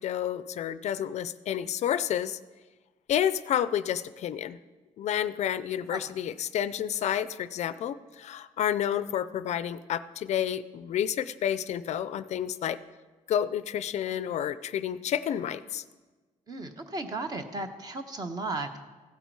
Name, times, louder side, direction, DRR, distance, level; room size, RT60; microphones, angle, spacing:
voice 1, 0.0-2.4 3.1-4.6 5.0-12.8 13.3-15.8, left 10 dB, 55° left, 14 dB, 0.4 m, -30 dB
voice 2, 16.5-18.8, right 2 dB, 30° right, 7 dB, 1.0 m, -35 dB
15.5 x 8.2 x 4.6 m, 1.3 s
cardioid pair, 155°, 14 cm